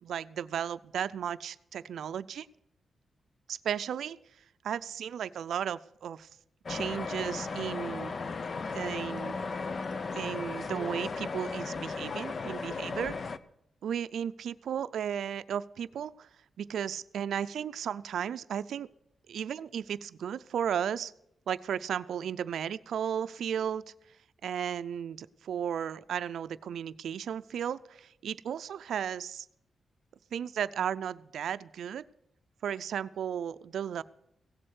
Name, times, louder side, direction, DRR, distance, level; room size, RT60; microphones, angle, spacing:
voice 1, 0.0-2.5 3.5-4.2 4.6-6.3 6.7-8.1 8.7-9.3 10.1-13.3 13.8-16.3 16.6-18.9 19.3-21.1 21.5-23.8 24.4-29.5 30.3-32.0 32.6-34.0, right 8 dB, 85° right, 13 dB, 0.4 m, -34 dB
sound 1, 6.7-13.4, left 4 dB, 45° left, 0.6 m, -36 dB
16.5 x 7.7 x 8.1 m, 0.78 s
cardioid pair, 90°, 0 cm